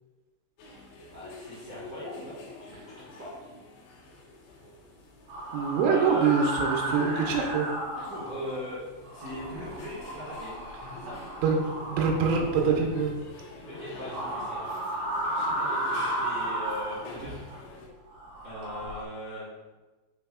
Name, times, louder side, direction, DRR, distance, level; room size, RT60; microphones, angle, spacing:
sound 1, 0.6-17.9, left 2 dB, 75° left, 3.3 m, -46 dB
voice 1, 1.1-3.3 5.9-6.3 7.9-8.8 9.1-10.6 10.9-11.2 13.6-17.3 18.4-19.5, equal, 40° right, -11 dB, 1.5 m, -40 dB
sound 2, 5.3-8.7 9.0-13.1 13.9-17.6 18.1-19.0, right 1 dB, 70° right, 2.0 m, -34 dB
voice 2, 5.5-7.7 11.4-13.2, right 5 dB, 90° right, 1 dB, 3.4 m, -25 dB
8.4 x 6.0 x 2.3 m, 1.2 s
omnidirectional pair, 5.7 m